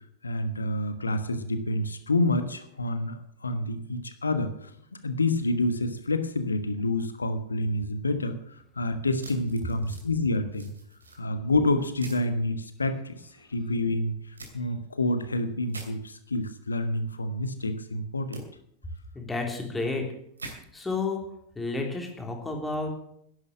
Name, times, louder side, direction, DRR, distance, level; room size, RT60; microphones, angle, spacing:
voice 1, 0.2-4.7 5.0-10.7 11.2-14.1 14.5-18.4, left 2 dB, 75° left, 10 dB, 1.3 m, -28 dB
sound 1, 9.2-10.1 10.5-11.2 12.0-12.3 14.4-14.5 15.7-15.9 18.3-18.4 20.4-20.6, right 2 dB, 75° right, 2.7 m, -43 dB
voice 2, 19.1-20.0 20.7-21.2 21.5-23.0, left 3 dB, 10° left, 2 dB, 3.3 m, -31 dB
11.5 x 11.0 x 7.5 m, 0.72 s
figure-of-eight pair, 90°, 0 cm